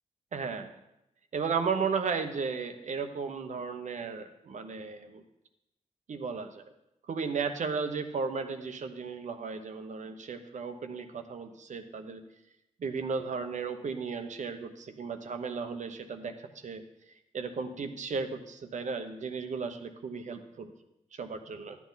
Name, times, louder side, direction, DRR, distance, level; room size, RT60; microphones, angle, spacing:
voice 1, 0.3-0.7 1.3-5.2 6.1-6.6 7.1-12.2 12.8-16.8 17.3-20.7 21.1-21.8, right 5 dB, 65° right, 7 dB, 1.0 m, -35 dB
12.0 x 8.4 x 4.0 m, 0.88 s
cardioid pair, 70°, 13 cm